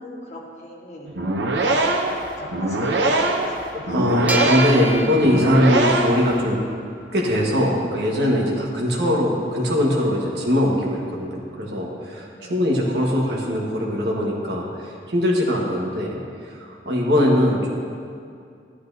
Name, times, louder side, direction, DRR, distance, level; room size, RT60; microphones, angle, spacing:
voice 1, 0.0-1.1 1.7-1.9 2.4-4.0 12.3-12.7, left 2 dB, 40° left, -3 dB, 1.4 m, -38 dB
sound 1, 1.1-6.3, right 2 dB, 85° right, 0.7 m, -22 dB
voice 2, 3.9-6.6 7.1-16.2 16.4-17.7, left 1 dB, 65° right, -2 dB, 1.5 m, -21 dB
sound 2, 4.3-7.2, right 2 dB, 10° right, 0.4 m, -31 dB
11.5 x 10.5 x 2.7 m, 2.3 s
head